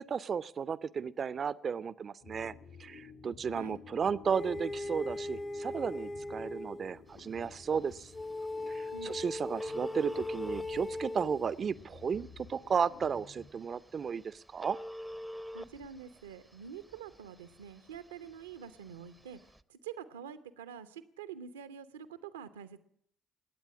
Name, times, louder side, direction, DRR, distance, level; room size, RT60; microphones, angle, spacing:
voice 1, 0.0-2.5 2.8-8.1 8.7-14.8, right 6 dB, 45° right, 19 dB, 0.6 m, -34 dB
sound 1, 2.2-14.1, left 5 dB, 60° left, 2.3 m, -53 dB
voice 2, 3.5-3.8 8.9-9.1 15.5-19.4 19.7-22.8, right 7 dB, 85° right, 13 dB, 0.8 m, -46 dB
sound 2, 4.3-6.9 8.1-11.4, left 2 dB, 30° left, 1.1 m, -39 dB
Telephone, 7.1-19.6, equal, 5° right, 0.7 m, -49 dB
21.5 x 9.0 x 7.5 m, 0.70 s
hypercardioid pair, 50°, 0 cm